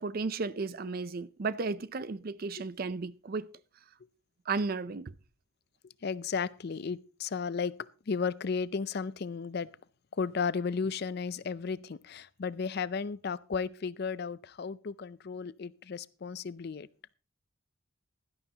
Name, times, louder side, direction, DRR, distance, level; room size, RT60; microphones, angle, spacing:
voice 1, 0.0-3.5 4.5-5.1, right 4 dB, 45° right, 0.5 m, -34 dB
voice 2, 6.0-9.7 10.2-16.9, left 5 dB, 50° left, 0.5 m, -34 dB
16.5 x 11.5 x 2.9 m
head